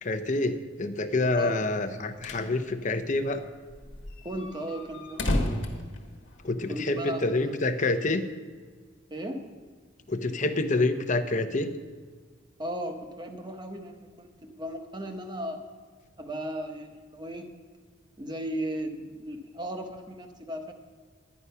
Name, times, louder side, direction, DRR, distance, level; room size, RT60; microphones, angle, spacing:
voice 1, 0.0-3.4 6.4-8.2 10.1-11.7, left 2 dB, 40° left, 9 dB, 0.7 m, -27 dB
sound 1, 2.0-2.5 2.8-2.9 3.1-3.2 3.7-6.7, left 1 dB, 70° left, 1.4 m, -32 dB
voice 2, 4.2-5.5 6.7-7.6 9.1-9.5 12.6-15.6 16.2-17.5 18.2-20.7, equal, 25° right, 5 dB, 1.1 m, -36 dB
11.0 x 9.6 x 5.6 m, 1.5 s
head